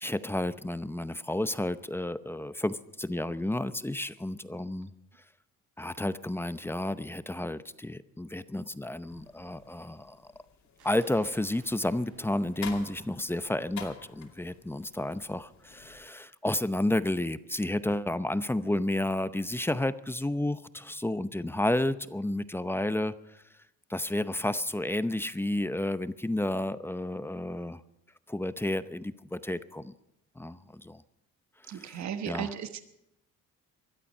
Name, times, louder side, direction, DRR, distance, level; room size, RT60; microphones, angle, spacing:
voice 1, 0.0-4.9 5.8-10.2 10.8-23.4 23.9-27.8 28.3-29.9 30.4-31.0 31.6-32.5, left 1 dB, 10° left, 13 dB, 0.7 m, -31 dB
sound 1, 9.1-16.1, left 7 dB, 65° left, 2.6 m, -49 dB
sound 2, 10.8-14.2, right 4 dB, 90° right, 5.4 m, -61 dB
voice 2, 31.7-32.8, right 8 dB, 65° right, 9 dB, 1.3 m, -35 dB
20.5 x 12.5 x 5.5 m, 0.83 s
cardioid pair, 90°, 30 cm